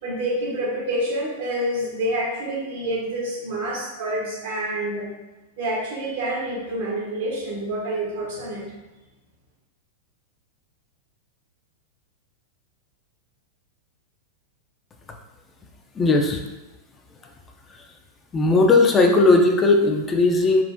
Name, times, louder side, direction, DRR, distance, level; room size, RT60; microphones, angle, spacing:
voice 1, 0.0-5.1 5.6-8.6, right 1 dB, 70° right, -3 dB, 1.0 m, -27 dB
voice 2, 16.0-16.4 17.7-17.8 18.3-20.6, left 3 dB, 25° left, 3 dB, 0.3 m, -17 dB
3.5 x 2.1 x 2.5 m, 1.1 s
hypercardioid pair, 110°, 0 cm